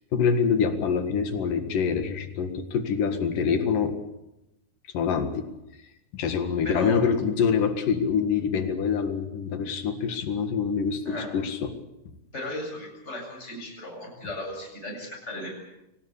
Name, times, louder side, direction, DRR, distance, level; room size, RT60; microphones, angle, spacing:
voice 1, 0.1-4.0 4.9-5.5 6.1-11.8, left 6 dB, 65° left, 8 dB, 3.3 m, -25 dB
voice 2, 6.6-7.0 11.0-11.3 12.3-15.6, left 2 dB, 15° left, 0 dB, 8.0 m, -35 dB
24.5 x 18.5 x 8.5 m, 0.90 s
omnidirectional pair, 4.3 m